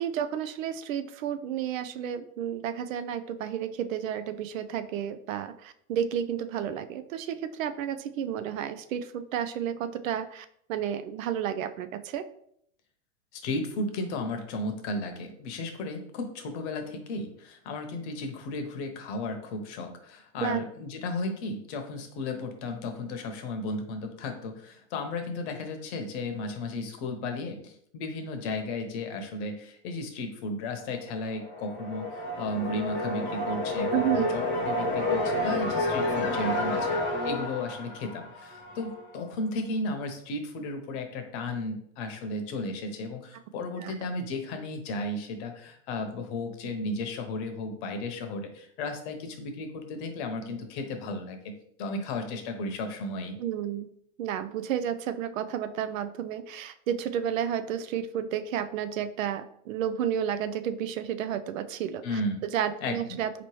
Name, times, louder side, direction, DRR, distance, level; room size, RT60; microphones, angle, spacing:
voice 1, 0.0-12.2 20.4-20.6 33.9-34.3 43.8-43.9 53.4-53.9 54.2-63.5, right 9 dB, 75° right, 11 dB, 0.5 m, -31 dB
voice 2, 13.3-36.9 37.2-51.5 51.8-53.4 62.0-62.4 62.8-63.2, left 2 dB, 55° left, 5 dB, 0.9 m, -34 dB
sound 1, 31.3-39.0, left 1 dB, 30° left, 0.8 m, -30 dB
4.1 x 3.0 x 3.0 m, 0.70 s
hypercardioid pair, 120°, 40 cm